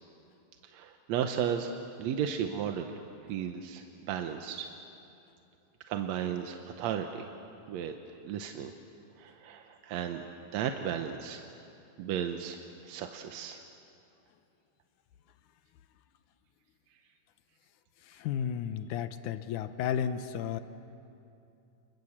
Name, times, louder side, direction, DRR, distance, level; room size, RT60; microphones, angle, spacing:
voice 1, 0.7-1.7 2.0-3.0 3.3-4.7 5.9-7.3 7.7-7.9 8.2-8.7 9.2-10.2 10.5-11.5 12.0-13.6, right 8 dB, 70° right, 6 dB, 1.9 m, -34 dB
voice 2, 18.0-20.6, left 8 dB, 75° left, 11 dB, 2.3 m, -33 dB
29.5 x 21.5 x 7.3 m, 2.7 s
omnidirectional pair, 3.7 m